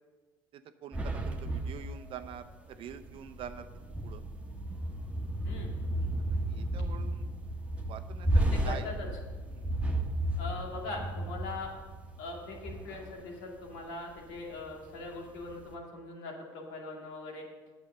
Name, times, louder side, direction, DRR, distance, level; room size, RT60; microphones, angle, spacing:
voice 1, 0.5-3.7 4.0-4.2 6.5-7.2 7.9-8.9 9.5-9.7, right 9 dB, 50° right, 10 dB, 0.8 m, -45 dB
sound 1, 0.9-13.4 13.7-13.8 14.2-15.0 15.4-15.7, right 1 dB, 10° right, 1.4 m, -34 dB
voice 2, 5.4-5.8 8.5-9.1 10.4-11.7 12.2-17.4, left 3 dB, 75° left, 0 dB, 2.3 m, -41 dB
8.8 x 7.1 x 6.7 m, 1.4 s
hypercardioid pair, 75°, 11 cm